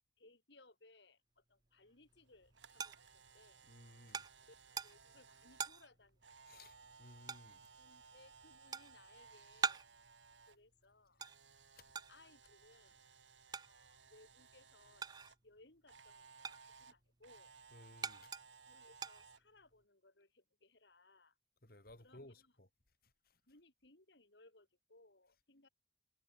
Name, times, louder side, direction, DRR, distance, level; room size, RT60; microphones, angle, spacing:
voice 1, 0.2-3.6 4.5-6.2 6.5-6.8 7.8-9.9 10.5-11.2 12.1-13.0 13.7-17.6 18.7-21.4 22.0-22.5 23.5-25.7, left 2 dB, 65° left, 3.3 m, -66 dB
sound 1, 1.8-15.6 15.9-19.8, right 5 dB, 20° right, 0.7 m, -46 dB
Camera, 2.2-10.6 10.9-15.4 15.9-19.4, right 5 dB, 80° right, 3.2 m, -61 dB
voice 2, 3.6-4.3 6.5-7.7 11.7-11.9 17.7-18.3 21.6-22.7 23.2-23.4, left 1 dB, 50° left, 3.5 m, -59 dB
head